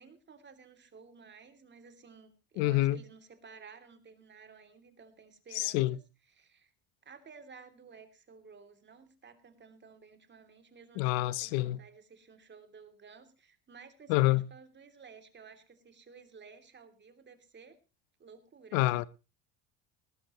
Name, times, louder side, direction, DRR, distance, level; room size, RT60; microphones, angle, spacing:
voice 1, 0.0-6.0 6.3-6.7 7.0-17.8 18.2-19.0, right 5 dB, 30° right, 2.9 m, -54 dB
voice 2, 2.6-3.0 5.5-6.0 11.0-11.8 14.1-14.4 18.7-19.1, left 18 dB, 85° left, 0.8 m, -27 dB
19.5 x 13.5 x 3.0 m
supercardioid pair, 105°, 36 cm